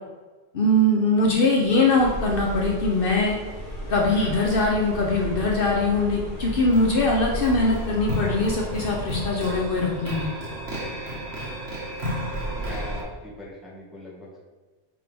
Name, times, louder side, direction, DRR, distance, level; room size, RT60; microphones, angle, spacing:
voice 1, 0.5-3.4 3.9-10.3, left 2 dB, 60° left, -2 dB, 0.9 m, -22 dB
sound 1, 1.5-9.6, right 1 dB, 75° left, 1.4 m, -42 dB
sound 2, 1.9-13.0, right 1 dB, 70° right, 1.7 m, -34 dB
sound 3, 3.5-11.1, left 1 dB, 40° left, 0.7 m, -37 dB
voice 2, 12.5-14.4, left 1 dB, ahead, -6 dB, 1.6 m, -40 dB
7.7 x 3.6 x 3.4 m, 1.3 s
omnidirectional pair, 1.1 m